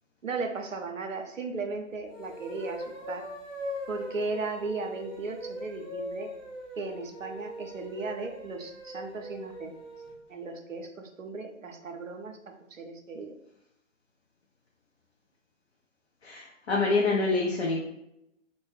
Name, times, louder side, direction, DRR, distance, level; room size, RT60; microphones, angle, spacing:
voice 1, 0.2-3.3 3.9-6.3 6.8-9.7 10.3-12.4 12.7-13.3, right 3 dB, 80° right, 5 dB, 0.6 m, -36 dB
sound 1, 2.0-10.2, equal, 5° right, 0.5 m, -41 dB
voice 2, 16.2-17.8, left 3 dB, 55° left, -2 dB, 0.5 m, -26 dB
2.2 x 2.0 x 3.2 m, 0.82 s
figure-of-eight pair, 130°, 39 cm